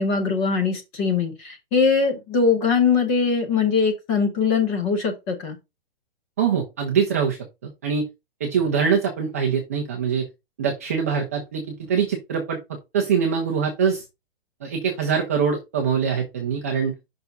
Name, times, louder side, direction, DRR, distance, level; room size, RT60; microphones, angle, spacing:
voice 1, 0.0-5.6, left 5 dB, 15° left, 0.9 m, -21 dB
voice 2, 6.4-8.0 8.4-10.3 10.6-11.6 11.9-12.6 12.9-14.0 14.6-16.9, right 6 dB, 15° right, 0.5 m, -23 dB
5.8 x 3.4 x 5.2 m
hypercardioid pair, 180°, 30 cm